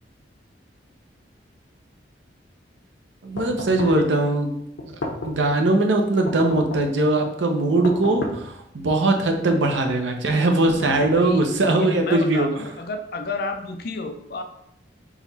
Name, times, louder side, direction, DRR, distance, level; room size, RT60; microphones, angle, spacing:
voice 1, 3.2-4.5 4.8-4.9 5.2-12.5, right 2 dB, 80° right, 3 dB, 0.7 m, -20 dB
sound 1, 3.4-4.1 4.8-5.5 6.3-7.0 7.8-8.6 9.3-9.9 10.6-11.5, left 2 dB, 90° left, 0.7 m, -34 dB
voice 2, 11.1-11.5 11.8-14.4, left 3 dB, 55° left, 6 dB, 0.5 m, -31 dB
3.9 x 3.0 x 4.1 m, 0.77 s
head